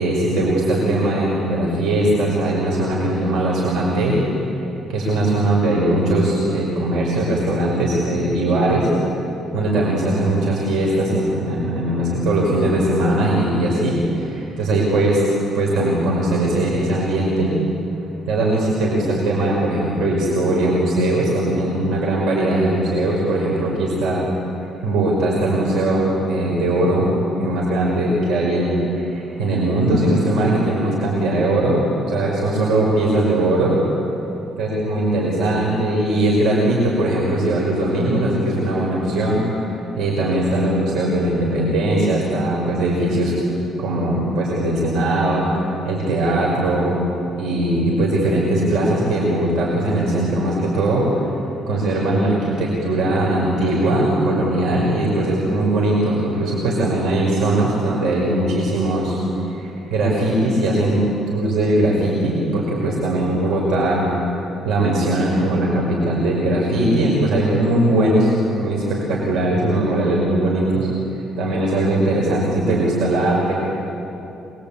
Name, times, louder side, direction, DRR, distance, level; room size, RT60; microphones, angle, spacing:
voice 1, 0.0-4.2 4.9-8.9 9.5-15.2 15.5-17.5 18.3-24.3 24.8-27.1 27.4-31.8 32.1-33.7 34.6-43.3 43.8-47.0 47.4-51.3 51.7-59.2 59.5-64.1 64.6-68.3 68.6-70.9 71.4-73.5, right 1 dB, 80° right, -4 dB, 5.7 m, -20 dB
26.0 x 22.5 x 8.9 m, 2.9 s
cardioid pair, 145°, 0 cm